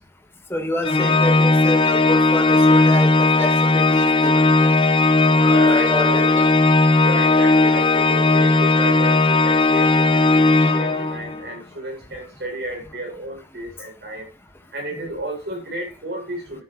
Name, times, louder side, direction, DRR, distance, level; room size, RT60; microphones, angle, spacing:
voice 1, 0.5-4.8 5.3-6.5, left 1 dB, 15° left, 1.7 m, -28 dB
Organ, 0.8-11.4, left 2 dB, 30° left, 0.7 m, -16 dB
voice 2, 5.3-6.5 7.0-14.3 14.7-16.6, right 1 dB, 65° right, 7.0 m, -32 dB
13.0 x 8.0 x 3.2 m
head